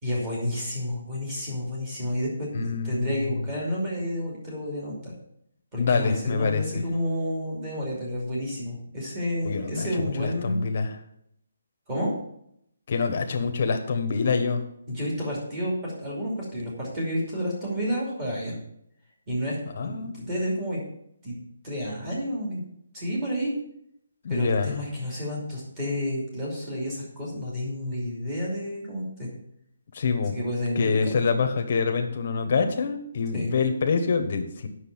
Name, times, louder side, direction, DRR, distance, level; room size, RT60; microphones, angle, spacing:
voice 1, 0.0-5.1 5.7-10.6 11.9-12.1 14.9-18.6 19.3-19.6 19.8-20.8 21.2-21.4 21.6-22.6 22.9-23.6 24.3-29.3 30.3-31.2 33.3-33.5, equal, 15° right, -5 dB, 2.7 m, -30 dB
voice 2, 2.5-3.4 5.8-6.8 9.4-10.9 12.9-14.6 19.7-20.2 24.2-24.7 29.9-30.3 30.7-34.7, left 5 dB, 35° left, 6 dB, 1.1 m, -26 dB
8.2 x 6.4 x 7.1 m, 0.74 s
hypercardioid pair, 180°, 0 cm